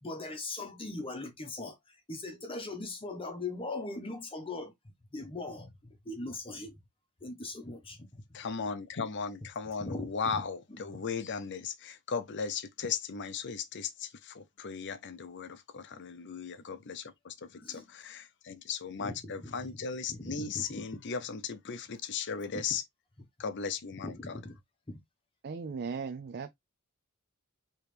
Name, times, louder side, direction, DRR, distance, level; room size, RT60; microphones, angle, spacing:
voice 1, 0.0-4.7 5.1-6.8 7.2-8.4 9.8-10.4 10.7-11.0 17.6-17.9 19.0-20.8 22.5-22.6 24.0-24.6 24.9-25.0, left 2 dB, 25° left, 0.9 m, -40 dB
voice 2, 8.3-22.8 23.4-24.3, left 6 dB, 55° left, 0.7 m, -37 dB
voice 3, 25.4-26.5, right 5 dB, 45° right, 0.4 m, -37 dB
4.8 x 3.1 x 3.3 m
head